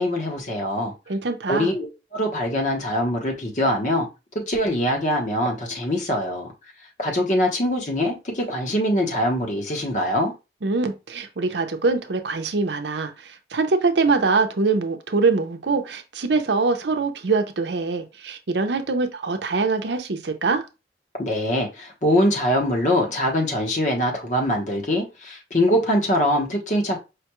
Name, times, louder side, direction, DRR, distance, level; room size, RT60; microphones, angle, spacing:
voice 1, 0.0-0.9 1.5-1.9 2.1-4.1 4.3-6.5 7.0-10.3 21.2-27.0, equal, 45° left, 1.0 m, -23 dB
voice 2, 1.1-1.7 10.6-20.7, right 4 dB, 80° right, 0.6 m, -23 dB
5.0 x 2.3 x 3.0 m
head